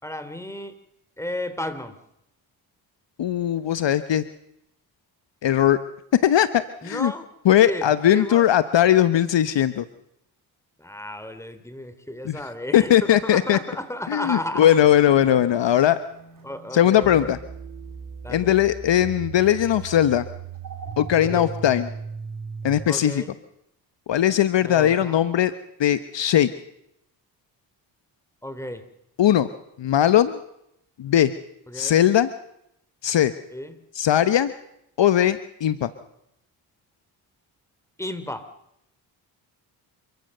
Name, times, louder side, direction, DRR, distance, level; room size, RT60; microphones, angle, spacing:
voice 1, 0.0-0.7 1.2-1.9 6.8-7.3 7.6-8.5 10.8-14.7 16.4-17.3 18.2-18.5 21.2-21.5 22.9-23.3 24.6-25.2 28.4-28.8 31.7-32.0 33.5-33.8 38.0-38.5, left 1 dB, 5° left, 11 dB, 3.3 m, -33 dB
voice 2, 3.2-4.2 5.4-5.8 6.2-7.1 7.4-9.8 12.2-12.4 12.7-13.6 14.1-16.0 16.7-17.4 18.3-20.2 21.0-21.9 22.6-23.2 24.1-25.5 25.8-26.5 29.2-29.5 29.8-30.4 31.0-31.3 31.7-32.3 33.0-33.3 33.9-34.5 35.0-35.9, left 11 dB, 60° left, 13 dB, 1.1 m, -19 dB
sound 1, 14.5-22.9, right 5 dB, 40° right, 4.4 m, -38 dB
28.0 x 15.0 x 6.7 m, 0.80 s
supercardioid pair, 50°, 49 cm